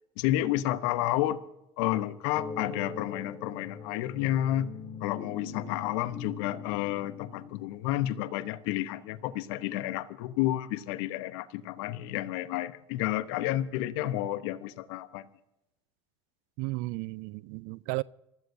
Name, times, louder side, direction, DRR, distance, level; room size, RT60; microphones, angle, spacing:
voice 1, 0.2-1.4 1.8-4.7 5.0-15.3, left 14 dB, 70° left, 0.9 m, -30 dB
sound 1, 2.3-7.5, left 5 dB, 30° left, 2.9 m, -41 dB
voice 2, 16.6-18.0, right 23 dB, 65° right, 0.4 m, -34 dB
28.0 x 14.0 x 2.7 m
hypercardioid pair, 70°, 15 cm